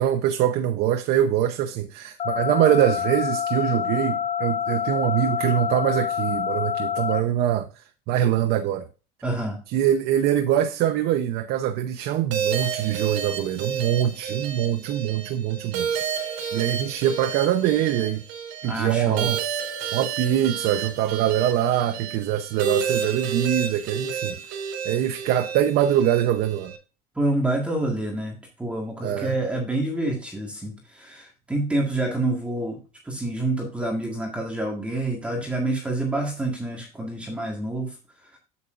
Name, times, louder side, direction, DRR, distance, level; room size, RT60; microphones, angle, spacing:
voice 1, 0.0-8.9 9.7-15.9 16.5-18.2 18.6-19.4 19.9-24.4 24.8-26.7 29.0-29.3, right 11 dB, 70° right, 0.8 m, -23 dB
sound 1, 2.2-7.2, left 8 dB, 35° left, 1.1 m, -27 dB
voice 2, 9.2-9.6 18.6-19.3 27.2-38.4, right 2 dB, 5° right, 1.8 m, -28 dB
sound 2, 12.3-26.8, right 7 dB, 90° right, 3.2 m, -31 dB
8.5 x 8.3 x 2.6 m
cardioid pair, 160°, 17 cm